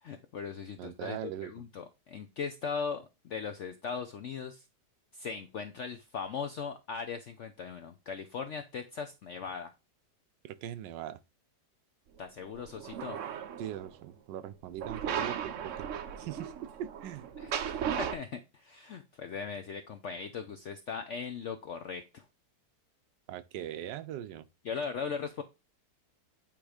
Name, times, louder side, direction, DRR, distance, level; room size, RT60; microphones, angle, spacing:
voice 1, 0.0-4.6 5.1-9.7 12.2-13.2 17.4-22.2 24.6-25.4, left 6 dB, 65° left, 0.7 m, -39 dB
voice 2, 0.8-1.5 10.4-11.2 13.6-15.9 16.2-17.3 23.3-24.4, right 11 dB, 90° right, 1.3 m, -40 dB
sound 1, 12.5-13.9 14.8-18.1, right 8 dB, 65° right, 0.8 m, -36 dB
8.8 x 3.1 x 4.9 m
omnidirectional pair, 1.9 m